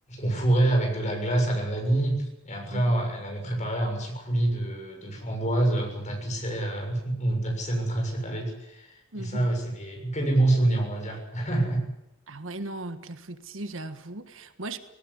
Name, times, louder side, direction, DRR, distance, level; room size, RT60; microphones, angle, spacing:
voice 1, 0.1-11.8, right 1 dB, 35° left, 2 dB, 6.9 m, -26 dB
voice 2, 9.1-9.5 12.3-14.8, right 2 dB, 65° right, 10 dB, 1.5 m, -37 dB
19.5 x 18.5 x 10.0 m, 0.86 s
head